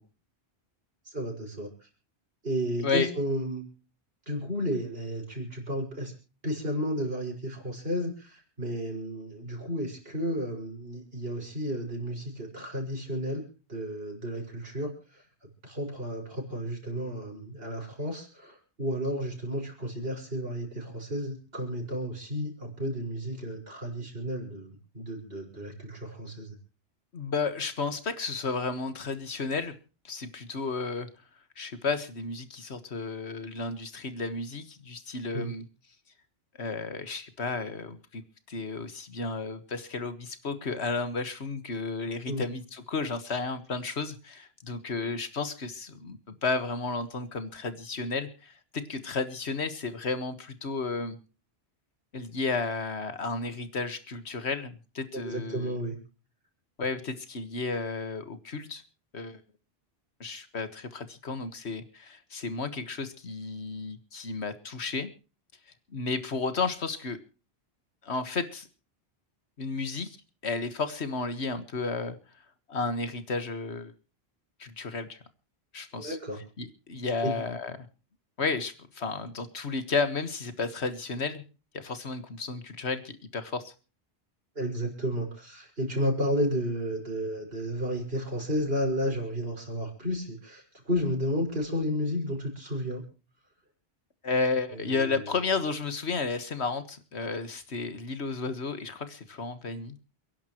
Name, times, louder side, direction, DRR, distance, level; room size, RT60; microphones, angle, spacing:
voice 1, 1.0-1.7 2.4-3.7 4.3-6.1 6.4-15.2 15.6-24.7 24.9-26.5 35.3-35.5 42.3-42.4 55.1-56.0 75.9-76.4 77.2-77.3 84.6-93.0 94.7-95.2, equal, 65° right, 1 dB, 6.1 m, -32 dB
voice 2, 27.1-29.7 30.0-31.1 31.6-35.6 36.6-38.2 38.5-51.2 52.1-55.8 56.8-58.8 59.1-59.4 60.2-65.1 65.9-67.2 68.0-68.7 69.6-70.2 70.4-72.2 72.7-73.9 74.6-75.2 75.7-76.2 76.6-77.7 78.4-81.4 81.7-83.7 94.2-100.0, left 4 dB, 80° left, 10 dB, 1.9 m, -32 dB
29.0 x 11.0 x 3.0 m, 0.35 s
omnidirectional pair, 1.1 m